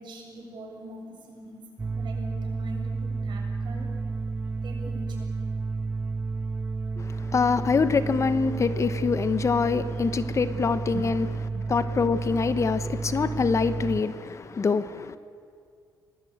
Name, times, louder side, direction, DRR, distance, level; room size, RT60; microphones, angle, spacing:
voice 1, 0.0-1.6 1.9-3.9 4.6-5.4 10.9-11.8, right 2 dB, 70° right, 7.2 m, -42 dB
sound 1, 1.8-14.0, right 4 dB, 25° right, 0.6 m, -31 dB
voice 2, 7.0-11.3 11.7-15.2, left 5 dB, 40° left, 1.1 m, -25 dB
25.5 x 20.0 x 8.8 m
cardioid pair, 115°, 8 cm